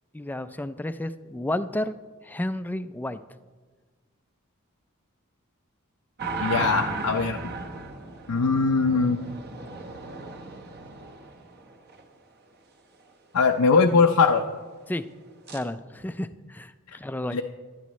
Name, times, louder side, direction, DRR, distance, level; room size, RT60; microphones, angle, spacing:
voice 1, 0.1-1.9 2.2-3.2 14.9-15.0 15.5-17.4, left 1 dB, 10° left, 12 dB, 0.3 m, -31 dB
sound 1, 6.2-12.0 15.5-15.6, right 3 dB, 50° right, 1.2 m, -35 dB
voice 2, 6.4-7.4 8.3-9.2 13.3-14.4 17.3-17.4, left 4 dB, 90° left, 3 dB, 0.6 m, -21 dB
18.0 x 12.0 x 3.1 m, 1.4 s
head